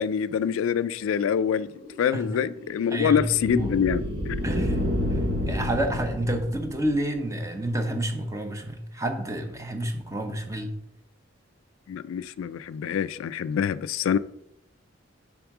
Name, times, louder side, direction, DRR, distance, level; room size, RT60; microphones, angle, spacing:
voice 1, 0.0-1.7 2.0-4.4 11.9-14.2, left 8 dB, 85° left, 0.3 m, -25 dB
sound 1, 1.6-7.2, left 1 dB, 55° right, 1.1 m, -30 dB
voice 2, 2.9-3.8 4.4-10.7, right 1 dB, 15° right, 0.8 m, -29 dB
7.1 x 3.6 x 5.9 m
head